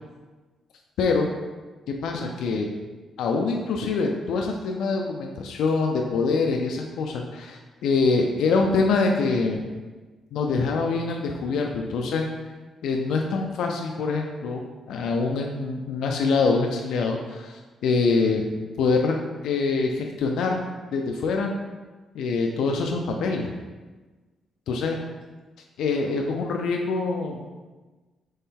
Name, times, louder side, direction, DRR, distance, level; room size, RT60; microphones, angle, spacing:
voice 1, 1.0-1.3 1.9-2.7 3.2-9.6 10.3-12.3 12.8-18.5 18.8-19.2 19.4-20.6 20.9-21.5 22.1-23.5 24.7-25.0 25.8-27.5, left 4 dB, 85° left, 2 dB, 0.4 m, -25 dB
4.2 x 3.1 x 3.7 m, 1.3 s
cardioid pair, 115°, 0 cm